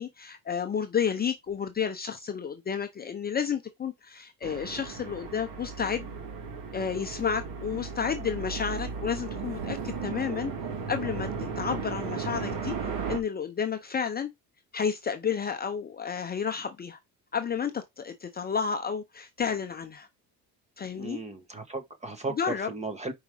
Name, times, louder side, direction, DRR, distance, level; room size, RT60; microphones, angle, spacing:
voice 1, 0.0-6.1 6.7-10.5 10.9-12.8 13.1-14.3 14.7-17.0 17.3-20.1 20.8-21.2 22.4-22.7, left 7 dB, 25° left, 0.6 m, -31 dB
sound 1, 4.4-13.2, right 5 dB, 60° right, 2.3 m, -35 dB
voice 2, 20.9-23.1, right 3 dB, 20° right, 1.1 m, -36 dB
5.1 x 4.8 x 4.9 m
cardioid pair, 135°, 38 cm